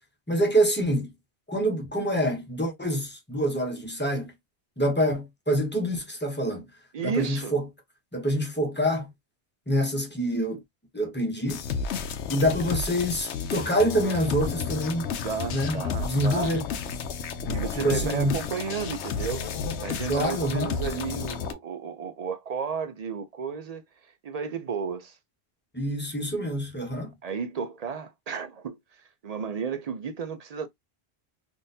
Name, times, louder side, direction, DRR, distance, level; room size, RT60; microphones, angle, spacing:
voice 1, 0.3-1.1 1.5-4.3 4.8-6.6 7.0-7.6 8.1-9.1 9.7-10.6 10.9-11.6 12.3-15.1 15.5-16.7 17.4-18.4 20.1-20.8 25.7-27.1, equal, 10° left, 0.8 m, -26 dB
voice 2, 6.9-7.6 15.2-16.5 17.5-19.4 19.8-23.8 24.2-25.2 27.2-30.7, right 6 dB, 50° right, 0.5 m, -33 dB
sound 1, 11.5-21.5, left 6 dB, 85° left, 0.9 m, -32 dB
3.7 x 2.5 x 2.6 m
omnidirectional pair, 1.1 m